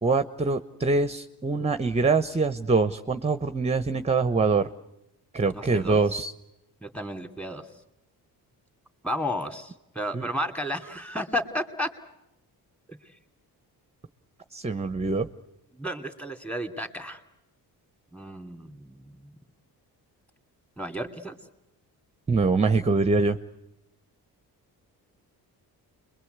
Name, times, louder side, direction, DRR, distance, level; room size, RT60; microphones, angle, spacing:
voice 1, 0.0-4.7 5.3-6.3 10.1-10.3 14.5-15.3 22.3-23.4, right 3 dB, 15° right, 11 dB, 0.9 m, -24 dB
voice 2, 5.5-6.0 6.8-7.7 9.0-11.9 12.9-13.2 15.7-17.2 18.1-19.3 20.8-21.4, equal, 5° left, 7 dB, 2.8 m, -33 dB
30.0 x 22.5 x 8.1 m, 0.88 s
cardioid pair, 110°, 39 cm